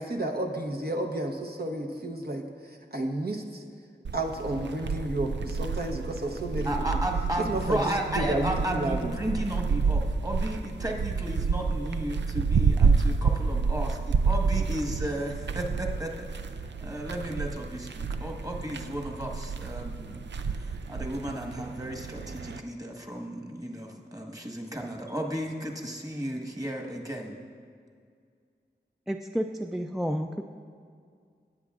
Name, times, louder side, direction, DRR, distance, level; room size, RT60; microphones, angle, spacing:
voice 1, 0.0-3.6 4.1-6.7 7.4-9.1, right 1 dB, 55° right, 2 dB, 0.9 m, -31 dB
sound 1, 4.0-22.6, right 5 dB, 75° right, 0.4 m, -29 dB
voice 2, 6.6-14.0 14.3-16.2 16.8-27.4, right 1 dB, 20° right, 1 dB, 1.4 m, -34 dB
voice 3, 29.1-30.4, equal, ahead, 4 dB, 0.4 m, -30 dB
18.0 x 8.4 x 2.5 m, 2.1 s
wide cardioid pair, 45°, 19 cm